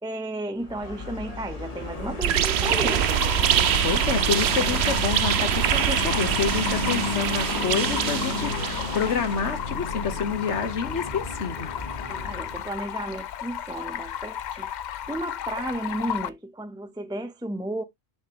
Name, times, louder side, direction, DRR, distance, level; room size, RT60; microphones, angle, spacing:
voice 1, 0.0-3.1 12.1-14.7 15.1-17.8, right 1 dB, 5° right, 0.4 m, -33 dB
Vehicle, 0.6-12.9, left 3 dB, 30° left, 1.3 m, -33 dB
sound 1, 2.2-9.3, right 11 dB, 65° right, 0.8 m, -24 dB
Stream, 2.7-16.3, left 10 dB, 80° left, 0.4 m, -34 dB
voice 2, 3.8-11.7, left 6 dB, 65° left, 1.4 m, -28 dB
7.1 x 5.2 x 3.0 m
omnidirectional pair, 1.3 m